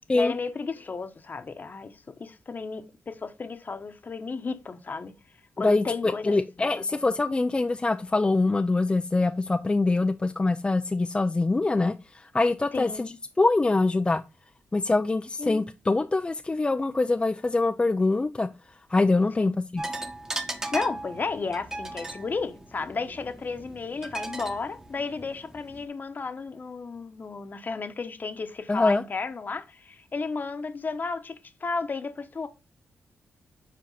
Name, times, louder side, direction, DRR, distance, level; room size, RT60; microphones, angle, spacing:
voice 1, 0.1-5.1 5.6-7.0 12.7-13.1 15.4-15.6 19.3-19.5 20.7-32.5, left 4 dB, 40° left, 1.0 m, -33 dB
voice 2, 5.6-14.2 14.7-18.5 18.9-19.8 28.7-29.0, left 3 dB, 20° left, 0.5 m, -24 dB
sound 1, 19.8-25.8, right 1 dB, 10° right, 1.1 m, -37 dB
7.5 x 4.6 x 4.0 m
cardioid pair, 85°, 5 cm